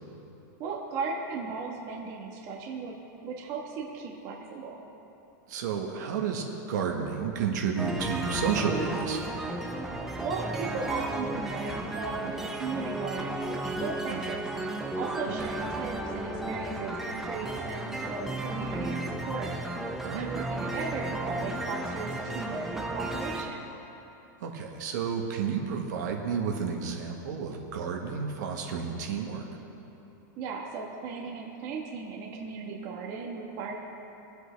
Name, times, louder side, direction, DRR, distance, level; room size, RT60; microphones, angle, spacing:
voice 1, 0.6-2.9 3.2-4.8 10.2-14.4 14.9-19.5 20.1-23.6 30.4-33.7, right 4 dB, 35° right, -1 dB, 1.3 m, -36 dB
voice 2, 5.5-9.2 14.1-14.2 15.3-15.4 20.0-20.3 24.4-29.4, right 6 dB, 60° right, 1 dB, 1.5 m, -31 dB
sound 1, 7.8-23.4, right 2 dB, 5° right, 0.7 m, -34 dB
22.0 x 8.2 x 3.4 m, 3.0 s
supercardioid pair, 170°, 11 cm